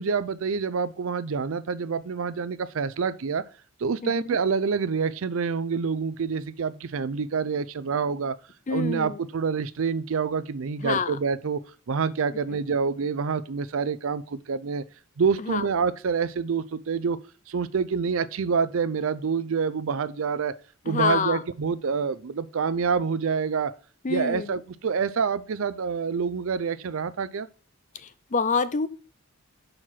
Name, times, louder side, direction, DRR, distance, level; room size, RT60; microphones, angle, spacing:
voice 1, 0.0-3.4 3.8-8.3 8.7-11.6 11.9-14.8 15.2-17.2 17.5-20.5 20.8-23.7 24.1-27.5, right 5 dB, 65° right, 0.5 m, -27 dB
voice 2, 4.0-4.4 8.7-9.2 10.8-11.2 12.5-12.6 15.4-15.6 20.9-21.4 24.0-24.6 27.9-28.9, left 5 dB, 35° left, 0.5 m, -27 dB
6.4 x 4.6 x 5.7 m
head